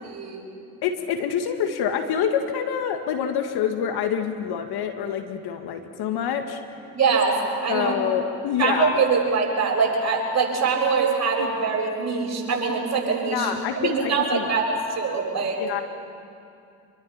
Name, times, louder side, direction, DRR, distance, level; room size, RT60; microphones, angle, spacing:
voice 1, 0.0-0.4 6.9-7.9 8.6-13.5 13.8-14.6 14.9-15.6, right 5 dB, 40° right, -1 dB, 7.8 m, -23 dB
voice 2, 0.8-6.6 7.7-9.0 11.4-11.5 13.3-14.5 15.6-15.8, left 8 dB, 60° left, 6 dB, 2.0 m, -26 dB
26.5 x 23.0 x 6.0 m, 2.5 s
hypercardioid pair, 60°, 43 cm